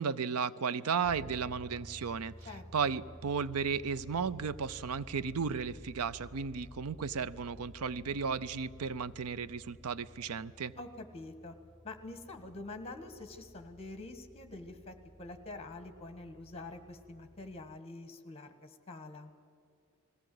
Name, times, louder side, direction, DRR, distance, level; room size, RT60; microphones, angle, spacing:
voice 1, 0.0-10.7, right 6 dB, 85° right, 17 dB, 0.5 m, -34 dB
sound 1, 1.0-17.8, left 1 dB, 5° right, 0.6 m, -53 dB
voice 2, 10.8-11.5 11.8-19.3, left 2 dB, 30° left, 8 dB, 1.6 m, -46 dB
20.5 x 16.0 x 7.8 m, 2.5 s
head